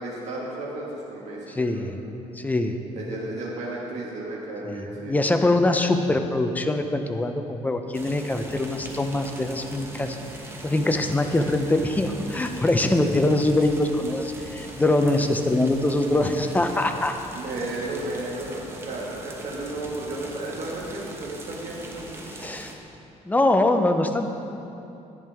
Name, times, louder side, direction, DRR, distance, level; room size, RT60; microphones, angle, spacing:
voice 1, 0.0-1.9 2.9-5.2 17.3-22.2, right 2 dB, 60° right, -4 dB, 1.6 m, -33 dB
voice 2, 1.5-2.0 2.4-2.8 4.7-10.2 10.6-17.1 22.3-22.7 23.3-24.3, left 2 dB, 10° left, 6 dB, 0.5 m, -23 dB
sound 1, 7.9-22.8, right 2 dB, 20° right, 1.0 m, -41 dB
10.5 x 10.5 x 3.5 m, 2.9 s
cardioid pair, 140°, 13 cm